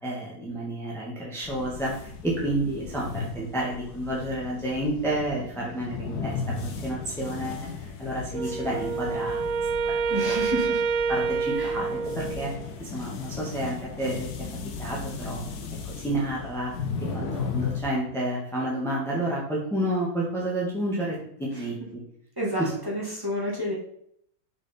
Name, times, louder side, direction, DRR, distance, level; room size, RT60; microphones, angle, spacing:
voice 1, 0.0-9.4 9.8-10.0 10.2-10.4 11.1-12.5 12.8-14.3 14.8-15.4 15.8-16.7 17.1-22.0 22.6-22.7, right 1 dB, ahead, -4 dB, 1.6 m, -30 dB
sound 1, 1.4-17.8, left 5 dB, 80° left, 1.5 m, -36 dB
Wind instrument woodwind instrument, 8.3-12.7, right 5 dB, 70° right, 0.9 m, -27 dB
voice 2, 10.1-10.8 11.6-11.7 21.5-21.6 22.4-23.8, equal, 15° right, -3 dB, 1.9 m, -30 dB
6.3 x 6.0 x 4.3 m, 0.69 s
omnidirectional pair, 1.7 m